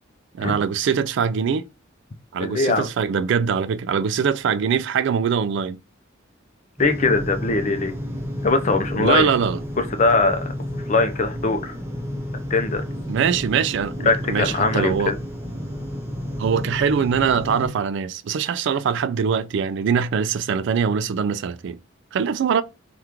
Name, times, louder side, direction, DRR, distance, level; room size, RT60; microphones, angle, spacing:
voice 1, 0.3-1.7 2.3-5.8 9.0-9.6 13.1-15.2 16.4-21.8 22.1-22.6, right 6 dB, 60° right, 0.3 m, -22 dB
voice 2, 2.4-2.9 6.8-7.9 8.4-9.3 9.8-10.5 10.9-11.7 12.5-12.8 14.0-15.2, left 3 dB, 40° left, 0.5 m, -21 dB
sound 1, 6.8-17.7, equal, 15° right, 0.8 m, -31 dB
3.4 x 2.4 x 2.9 m
head